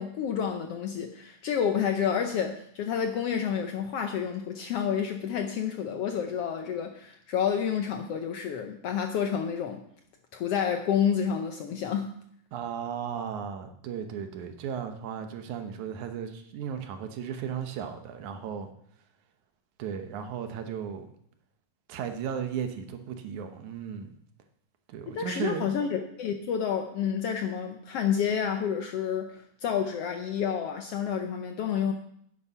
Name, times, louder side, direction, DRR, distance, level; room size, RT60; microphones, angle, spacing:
voice 1, 0.0-9.8 10.3-12.1 25.1-31.9, left 8 dB, 75° left, 5 dB, 1.4 m, -29 dB
voice 2, 12.5-18.7 19.8-21.1 21.9-24.1 24.9-25.6, right 7 dB, 80° right, 7 dB, 2.4 m, -35 dB
10.0 x 8.2 x 5.4 m, 0.68 s
omnidirectional pair, 3.4 m